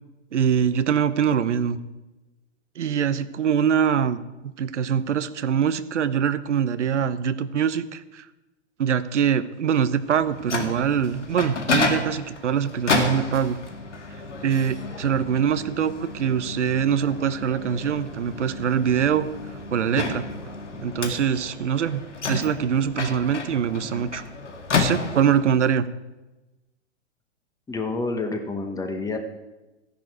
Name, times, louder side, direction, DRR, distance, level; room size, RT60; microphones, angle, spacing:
voice 1, 0.3-1.8 2.8-4.2 4.4-8.2 8.8-13.6 14.4-19.3 19.7-20.3 20.8-22.0 22.3-24.2 24.7-25.9, right 8 dB, 80° right, 12 dB, 0.9 m, -23 dB
Microwave oven, 10.1-25.6, left 3 dB, 90° left, 2.1 m, -30 dB
voice 2, 27.7-29.2, left 3 dB, 10° left, 6 dB, 1.3 m, -28 dB
14.0 x 10.5 x 4.7 m, 1.1 s
hypercardioid pair, 120°, 35 cm